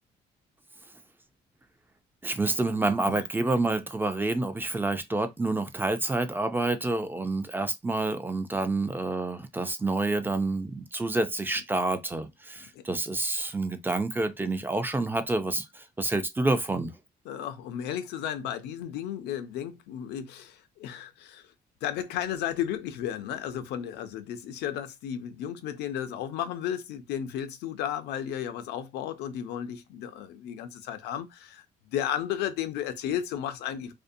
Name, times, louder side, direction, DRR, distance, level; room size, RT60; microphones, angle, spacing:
voice 1, 2.2-16.9, right 2 dB, 10° right, 0.3 m, -28 dB
voice 2, 17.3-21.5 21.8-33.9, left 10 dB, 80° left, 0.5 m, -34 dB
2.6 x 2.0 x 2.6 m
cardioid pair, 110°, 17 cm